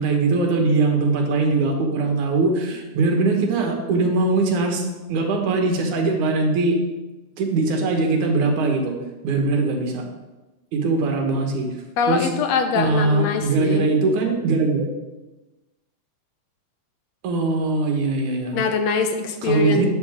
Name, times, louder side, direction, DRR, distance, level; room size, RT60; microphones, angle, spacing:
voice 1, 0.0-4.8 5.1-6.8 7.4-8.9 9.2-10.0 10.7-11.7 12.1-12.3 12.7-14.9 17.2-18.6 19.4-19.9, right 3 dB, 75° right, 2 dB, 2.9 m, -21 dB
voice 2, 12.0-13.9 18.5-19.9, left 4 dB, 70° left, 6 dB, 1.9 m, -23 dB
12.5 x 9.0 x 3.7 m, 1.1 s
omnidirectional pair, 3.6 m